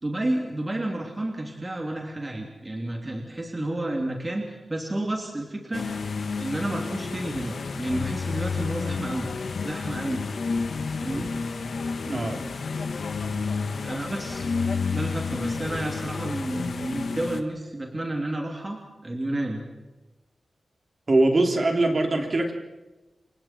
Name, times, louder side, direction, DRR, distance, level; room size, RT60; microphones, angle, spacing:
voice 1, 0.0-5.9 6.4-9.3 9.6-10.2 10.9-11.3 13.8-14.5 14.9-19.6, right 1 dB, 20° right, 1 dB, 2.9 m, -31 dB
sound 1, 5.7-17.4, left 4 dB, 70° left, 1.6 m, -30 dB
voice 2, 12.0-12.4 21.1-22.5, right 2 dB, 40° right, 2 dB, 3.4 m, -22 dB
29.5 x 26.5 x 4.5 m, 1.1 s
wide cardioid pair, 140°, 0 cm